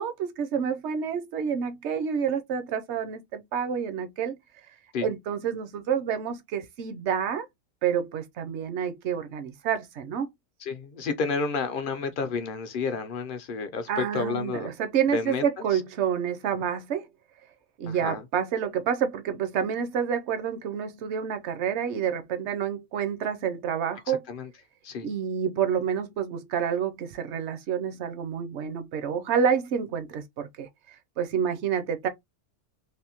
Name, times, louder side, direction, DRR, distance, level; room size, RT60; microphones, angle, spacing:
voice 1, 0.0-4.4 5.0-7.5 7.8-10.3 13.9-17.0 17.8-24.2 25.0-32.1, right 7 dB, 65° right, 0.9 m, -28 dB
voice 2, 10.6-14.7 15.1-15.4 15.7-15.8 17.9-18.2 24.1-24.5 24.8-25.1, left 5 dB, 55° left, 0.6 m, -30 dB
3.4 x 2.5 x 2.8 m
omnidirectional pair, 1.4 m